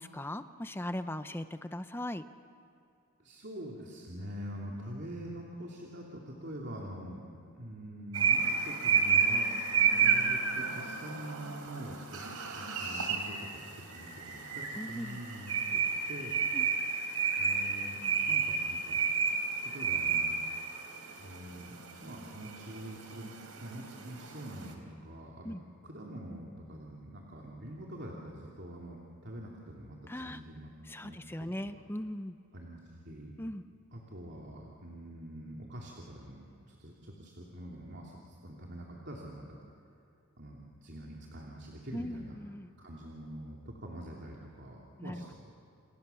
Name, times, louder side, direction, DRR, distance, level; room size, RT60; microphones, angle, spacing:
voice 1, 0.0-2.2 14.8-15.2 16.5-16.7 25.4-25.6 30.1-30.4 30.9-32.4 33.4-33.6 41.9-42.7 45.0-45.3, left 1 dB, 10° left, 10 dB, 0.7 m, -39 dB
voice 2, 3.2-7.2 7.5-9.5 9.9-15.8 16.1-16.3 17.3-18.0 18.3-19.0 19.6-20.3 21.2-23.3 23.6-25.6 25.8-30.7 31.0-31.8 32.5-32.8 33.0-33.3 33.9-39.5 40.4-42.4 42.8-45.3, right 1 dB, 50° right, -2 dB, 2.9 m, -45 dB
sound 1, 8.1-24.7, right 6 dB, 90° right, 3.8 m, -31 dB
29.5 x 28.5 x 7.1 m, 2.6 s
head